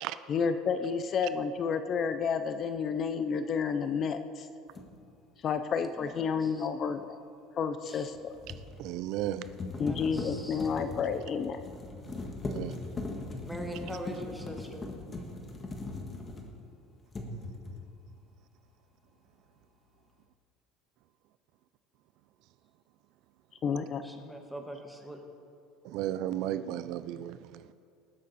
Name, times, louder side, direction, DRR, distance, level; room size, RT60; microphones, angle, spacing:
voice 1, 0.3-4.5 5.4-7.2 7.6-8.3 9.8-11.6 23.6-24.0, left 6 dB, 40° left, 10 dB, 0.6 m, -30 dB
sound 1, 4.7-4.9 8.0-16.7 17.1-17.9, left 2 dB, 25° left, 1.6 m, -40 dB
voice 2, 6.0-6.7 7.8-8.1 9.8-10.7 13.4-14.9 24.0-25.2, equal, ahead, 2 dB, 1.5 m, -42 dB
voice 3, 8.8-9.5 12.1-12.2 12.5-12.8 25.8-27.7, right 12 dB, 65° right, 14 dB, 0.4 m, -34 dB
19.5 x 7.6 x 4.2 m, 2.5 s
supercardioid pair, 115°, 0 cm